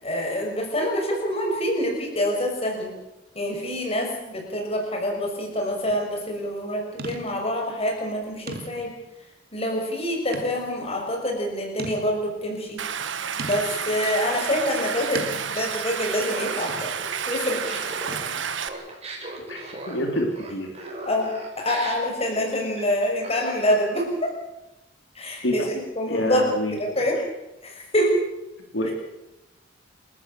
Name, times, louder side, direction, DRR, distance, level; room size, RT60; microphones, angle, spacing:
voice 1, 0.0-2.9 3.3-9.0 9.5-12.8 13.4-16.9 17.3-17.8 18.3-18.4 21.0-24.3 25.1-27.2 27.6-28.2 28.9-29.0, equal, 35° left, 1 dB, 6.4 m, -26 dB
sound 1, 5.8-6.1 7.0-7.5 8.0-8.1 8.5-9.1 10.3-10.7 11.2-11.3 11.8-12.4 13.4-13.8 15.1-15.7 16.7-17.1 18.1-18.5, right 3 dB, 55° right, 2.5 m, -37 dB
Stream, 12.8-18.7, right 7 dB, 80° right, 1.4 m, -30 dB
Laughter, 16.2-24.3, right 2 dB, 35° right, 5.6 m, -38 dB
voice 2, 19.9-20.7 25.4-25.5 26.1-26.8 28.7-28.9, left 1 dB, 75° left, 1 dB, 3.7 m, -26 dB
29.0 x 14.0 x 7.8 m, 0.94 s
head